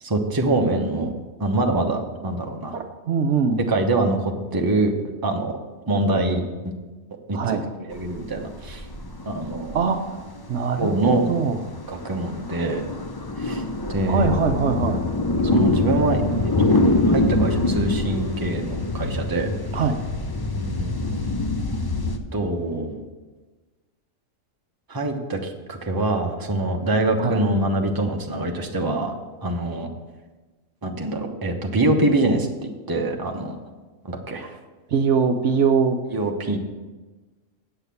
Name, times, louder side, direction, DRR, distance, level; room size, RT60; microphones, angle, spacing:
voice 1, 0.0-1.1 1.4-2.8 3.7-4.9 5.2-5.6 5.9-6.7 7.3-8.8 9.3-9.8 10.8-11.2 11.9-12.8 13.4-13.6 13.9-14.3 15.4-16.2 16.6-19.5 20.6-20.9 22.3-23.0 24.9-29.1 29.4-29.9 30.8-32.5 32.9-33.5 34.0-34.6 36.1-36.6, right 2 dB, 20° right, 2 dB, 0.9 m, -24 dB
voice 2, 2.7-3.6 7.3-7.6 9.7-10.2 10.5-11.6 14.1-15.0 19.7-20.0 27.2-27.5 34.9-36.0, right 5 dB, 65° right, 5 dB, 1.0 m, -22 dB
sound 1, 7.9-22.2, left 2 dB, 30° left, 0.4 m, -25 dB
8.2 x 7.8 x 6.9 m, 1.3 s
omnidirectional pair, 1.4 m